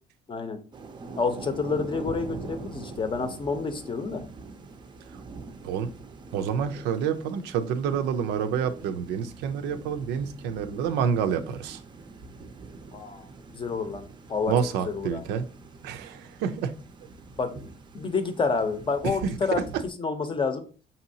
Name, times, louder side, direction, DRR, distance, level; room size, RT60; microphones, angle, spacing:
voice 1, 0.3-0.6 1.2-4.2 12.9-13.3 13.5-14.5 14.8-15.2 17.4-17.5 17.9-20.6, left 4 dB, 30° left, 8 dB, 0.6 m, -29 dB
Thunder / Rain, 0.7-19.9, right 4 dB, 30° right, 0.5 m, -44 dB
voice 2, 6.3-11.8 14.5-15.5 15.8-16.7 19.0-19.3, right 7 dB, 90° right, 8 dB, 0.5 m, -28 dB
5.3 x 2.8 x 2.7 m, 0.38 s
cardioid pair, 110°, 17 cm